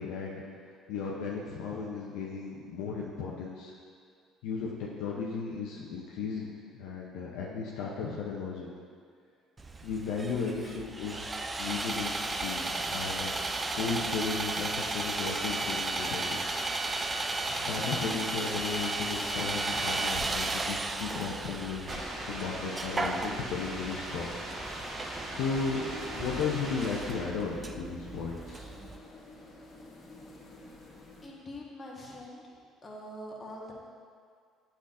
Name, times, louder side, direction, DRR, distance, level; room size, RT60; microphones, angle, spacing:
voice 1, 0.0-3.7 4.4-8.7 9.8-13.3 13.7-16.4 17.0-17.2 17.5-24.3 25.3-28.7, left 5 dB, 75° left, -4 dB, 0.6 m, -35 dB
Sawing, 9.6-29.0, right 2 dB, 25° right, 0.4 m, -35 dB
sound 1, 11.9-27.5, right 1 dB, 40° right, 1.4 m, -42 dB
sound 2, 24.8-31.3, left 2 dB, 45° left, 1.6 m, -51 dB
voice 2, 31.2-32.4 32.8-33.7, left 1 dB, 30° left, -3 dB, 1.3 m, -43 dB
8.3 x 5.7 x 2.5 m, 2.1 s
hypercardioid pair, 60°, 0 cm